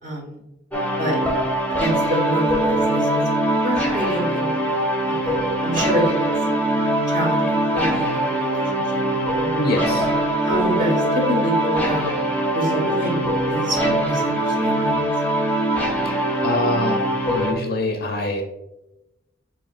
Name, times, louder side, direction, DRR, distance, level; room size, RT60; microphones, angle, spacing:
voice 1, 0.0-0.4 1.0-1.2 1.8-3.2 3.6-4.5 5.0-6.1 7.1-9.8 10.4-12.1 12.5-15.1, equal, 45° right, -2 dB, 1.5 m, -27 dB
sound 1, 0.7-17.5, right 1 dB, 10° left, 0.7 m, -22 dB
voice 2, 9.6-10.1 15.9-16.1 16.4-17.0 17.3-18.4, left 2 dB, 55° left, 3 dB, 0.5 m, -24 dB
7.0 x 2.9 x 2.4 m, 0.94 s
head